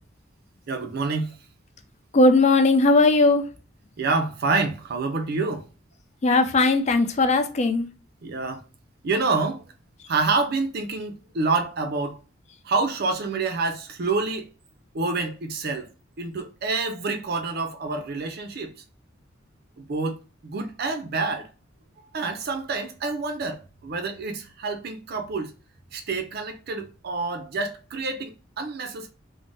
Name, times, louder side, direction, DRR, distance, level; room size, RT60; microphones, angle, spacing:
voice 1, 0.7-1.3 4.0-5.7 8.2-8.6 9.0-9.7 10.1-12.2 12.6-14.5 14.9-15.9 16.2-18.7 19.8-20.2 20.4-21.5 22.1-25.5 25.9-29.1, right 3 dB, 55° right, 0.5 m, -27 dB
voice 2, 2.1-3.4 6.2-7.9, left 2 dB, 35° left, 0.4 m, -18 dB
3.4 x 2.0 x 2.6 m
head